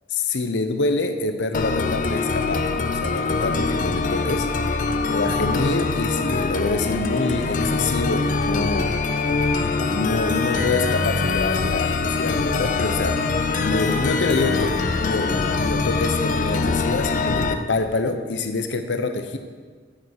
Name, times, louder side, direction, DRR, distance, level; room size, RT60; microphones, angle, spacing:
voice 1, 0.1-4.8 5.0-9.0 9.8-13.3 13.6-19.4, left 3 dB, 85° left, 7 dB, 0.7 m, -26 dB
sound 1, 1.5-17.5, left 4 dB, 45° left, 0.4 m, -23 dB
8.6 x 5.3 x 5.7 m, 1.5 s
head